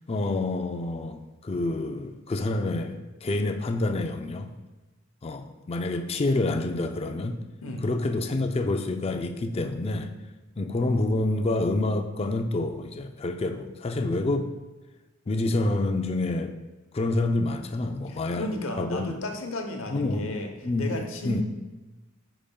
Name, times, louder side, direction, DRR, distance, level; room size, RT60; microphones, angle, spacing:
voice 1, 0.1-4.5 5.2-7.4 7.8-10.1 10.6-14.5 15.3-16.5 16.9-18.5 18.8-19.2 19.9-20.3 20.6-21.0 21.2-21.4, left 2 dB, 30° left, 6 dB, 0.4 m, -27 dB
voice 2, 18.1-20.5 20.8-21.4, left 1 dB, 80° left, 4 dB, 0.9 m, -33 dB
10.5 x 5.0 x 2.3 m, 1.1 s
head